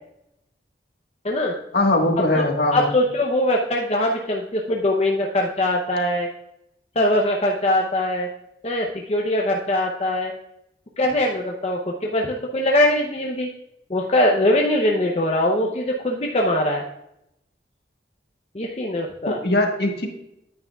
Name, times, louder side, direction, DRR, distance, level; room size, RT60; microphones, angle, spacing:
voice 1, 1.7-2.9 19.2-20.1, left 1 dB, 65° left, 2 dB, 1.5 m, -21 dB
voice 2, 2.7-6.3 7.0-8.3 8.6-10.3 11.0-13.5 13.9-16.8 18.5-19.4, left 1 dB, 35° left, 0 dB, 0.6 m, -22 dB
9.6 x 9.4 x 2.3 m, 0.83 s
head